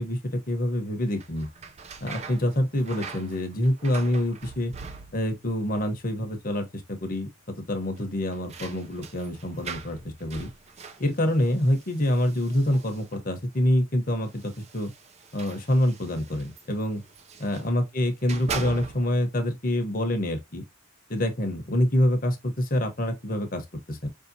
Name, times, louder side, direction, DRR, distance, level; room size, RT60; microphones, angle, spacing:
voice 1, 0.0-1.5 2.0-4.7 5.1-10.5 11.0-14.9 15.3-17.0 17.4-20.6 21.1-24.1, left 1 dB, 40° left, 0.9 m, -26 dB
sound 1, 1.1-5.5 5.8-6.5 6.8-6.9 7.9-13.4 14.2-17.7 18.1-19.3, right 5 dB, 30° right, 0.4 m, -42 dB
5.2 x 2.7 x 2.6 m
head